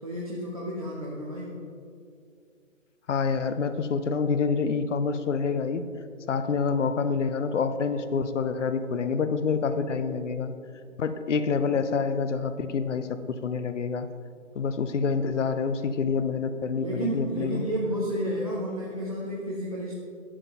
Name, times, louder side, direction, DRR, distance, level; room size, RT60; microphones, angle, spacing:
voice 1, 0.0-1.5 16.7-19.9, right 1 dB, 25° right, -6 dB, 0.6 m, -31 dB
voice 2, 3.1-5.8 6.3-10.5 11.0-14.1 14.6-17.7, left 5 dB, 60° left, 10 dB, 0.6 m, -27 dB
11.0 x 7.4 x 2.9 m, 2.3 s
hypercardioid pair, 170°, 41 cm